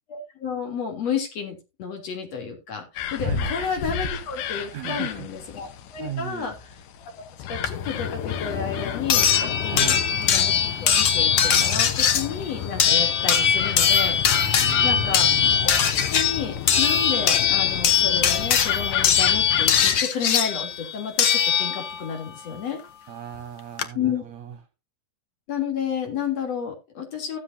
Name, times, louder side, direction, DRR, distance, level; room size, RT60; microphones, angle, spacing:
voice 1, 0.1-6.5 7.5-10.5 10.8-14.2 14.8-15.5 16.1-22.8 23.9-24.2 25.5-27.4, left 6 dB, 55° left, 3 dB, 4.2 m, -31 dB
sound 1, 3.0-20.0, left 9 dB, 90° left, 2.7 m, -31 dB
voice 2, 4.7-5.3 6.0-6.6 9.7-10.2 14.6-15.9 23.1-24.6, right 11 dB, 65° right, 8 dB, 2.3 m, -37 dB
sound 2, 7.6-7.7 9.1-22.1 23.4-23.5 23.8-23.9, left 8 dB, 75° left, 1.0 m, -21 dB
16.0 x 7.7 x 2.7 m, 0.27 s
omnidirectional pair, 3.6 m